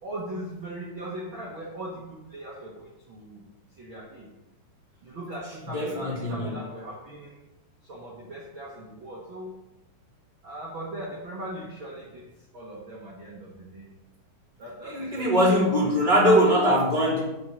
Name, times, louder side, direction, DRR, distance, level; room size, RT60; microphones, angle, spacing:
voice 1, 0.0-3.4 3.8-4.3 5.0-7.4 7.8-9.5 10.4-12.2 12.5-13.9 14.6-15.3 15.7-16.5, right 1 dB, 50° right, -4 dB, 1.6 m, -39 dB
voice 2, 5.7-6.6 14.8-17.2, equal, 10° left, -6 dB, 1.7 m, -21 dB
7.2 x 6.0 x 6.2 m, 0.98 s
omnidirectional pair, 4.1 m